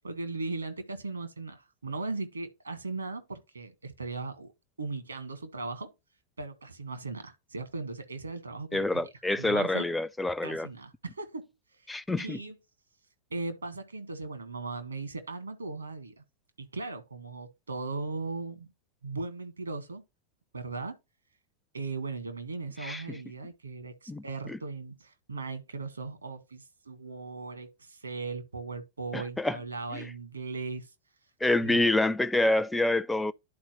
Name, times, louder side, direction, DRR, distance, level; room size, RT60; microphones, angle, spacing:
voice 1, 0.0-4.5 4.8-5.9 6.4-9.1 9.4-9.9 10.4-11.4 11.8-11.9 12.2-12.6 13.3-16.2 16.6-18.7 19.0-20.0 20.5-21.0 21.7-30.9 31.6-31.8, right 3 dB, 75° right, 1.3 m, -38 dB
voice 2, 8.7-10.7 11.9-12.4 22.8-23.0 24.1-24.2 24.5-24.6 29.1-29.6 29.9-30.1 31.4-33.3, left 2 dB, 5° left, 0.4 m, -27 dB
11.5 x 4.2 x 2.9 m
figure-of-eight pair, 90°, 0 cm